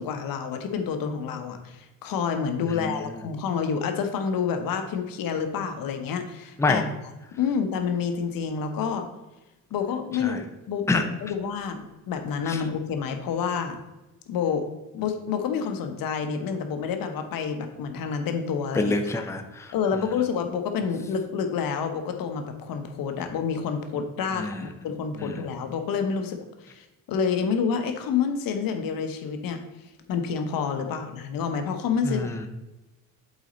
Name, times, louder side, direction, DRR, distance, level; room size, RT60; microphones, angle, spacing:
voice 1, 0.0-6.8 7.4-9.1 9.7-13.8 14.3-14.6 14.9-19.1 19.7-29.6 30.1-32.3, left 6 dB, 75° left, 6 dB, 0.9 m, -28 dB
voice 2, 18.7-19.7 24.4-24.7 25.2-25.4 32.0-32.5, left 3 dB, 10° left, 6 dB, 0.6 m, -26 dB
8.1 x 4.2 x 3.9 m, 1.0 s
cardioid pair, 105°, 35 cm